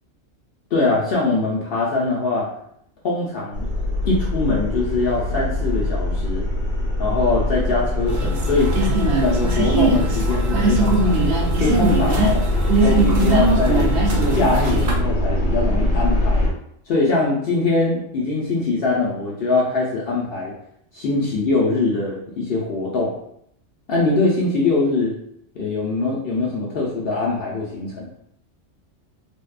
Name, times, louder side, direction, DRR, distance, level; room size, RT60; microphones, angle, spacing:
voice 1, 0.7-2.5 3.0-3.7 4.0-6.4 7.0-8.7 9.2-12.4 12.8-14.0 14.3-16.5 16.9-20.5 20.9-23.1 23.9-25.1 25.6-28.1, left 3 dB, 60° left, -4 dB, 0.7 m, -22 dB
sound 1, 3.5-16.5, left 1 dB, 90° left, 1.1 m, -22 dB
sound 2, 8.1-15.0, right 3 dB, 65° right, 0.6 m, -21 dB
2.6 x 2.2 x 2.3 m, 0.70 s
omnidirectional pair, 1.3 m